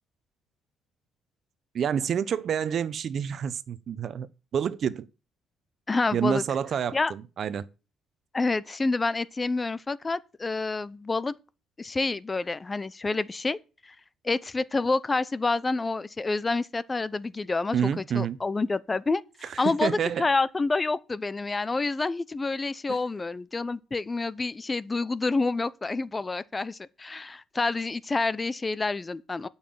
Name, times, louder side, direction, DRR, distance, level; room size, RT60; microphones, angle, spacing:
voice 1, 1.7-4.3 4.5-5.1 6.1-7.6 17.7-18.4 19.4-20.2, right 8 dB, 60° right, 0.8 m, -28 dB
voice 2, 5.9-6.4 6.9-7.1 8.3-11.3 11.8-13.6 13.8-13.9 14.2-29.5, left 3 dB, 25° left, 0.6 m, -28 dB
8.6 x 5.7 x 7.9 m
supercardioid pair, 75°, 0 cm